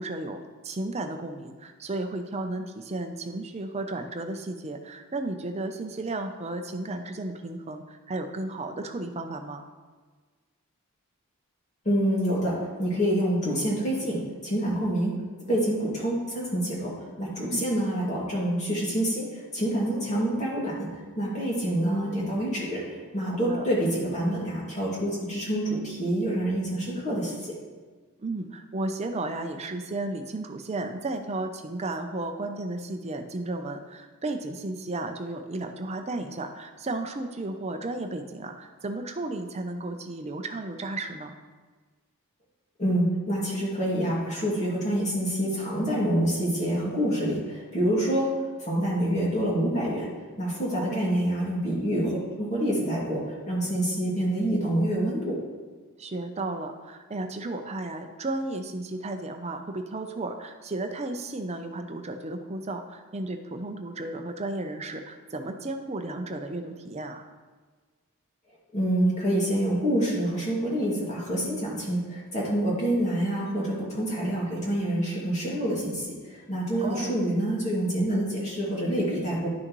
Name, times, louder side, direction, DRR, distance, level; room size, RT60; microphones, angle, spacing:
voice 1, 0.0-9.7 17.4-17.6 23.2-23.7 28.2-41.3 50.7-51.0 56.0-67.3 76.8-77.2, right 2 dB, 30° right, 6 dB, 0.6 m, -34 dB
voice 2, 11.8-15.2 15.5-27.5 42.8-48.3 48.6-50.1 50.4-55.4 68.7-79.5, right 1 dB, 30° left, -6 dB, 2.4 m, -27 dB
10.5 x 6.3 x 3.1 m, 1.4 s
head